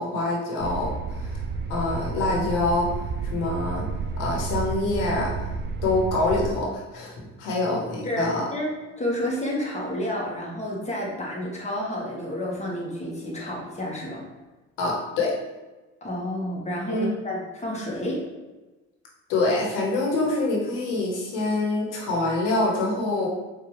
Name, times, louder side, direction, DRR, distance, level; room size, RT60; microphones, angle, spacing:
voice 1, 0.0-1.4 1.7-2.9 3.2-3.9 4.2-5.3 5.8-8.5 14.8-15.3 16.9-17.1 19.3-23.3, left 2 dB, 70° left, -2 dB, 1.4 m, -25 dB
sound 1, 0.6-6.5, right 4 dB, 35° right, 0.4 m, -31 dB
voice 2, 8.0-14.2 16.0-18.2, left 1 dB, 20° left, -3 dB, 1.4 m, -30 dB
4.5 x 2.8 x 3.2 m, 1.1 s
supercardioid pair, 75°, 33 cm